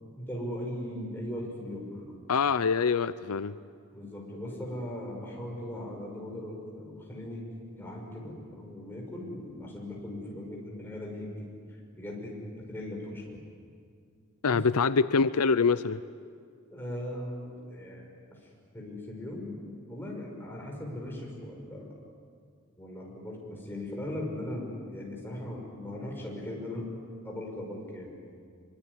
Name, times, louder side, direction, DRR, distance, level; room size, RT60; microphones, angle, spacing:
voice 1, 0.2-2.2 3.9-7.4 7.7-13.4 14.5-14.6 16.7-19.6 19.8-21.9 22.8-26.9 27.2-28.2, left 1 dB, 10° left, -2 dB, 6.1 m, -39 dB
voice 2, 2.3-3.6 14.4-16.0, left 5 dB, 85° left, 15 dB, 0.7 m, -25 dB
24.5 x 24.0 x 9.9 m, 2.2 s
head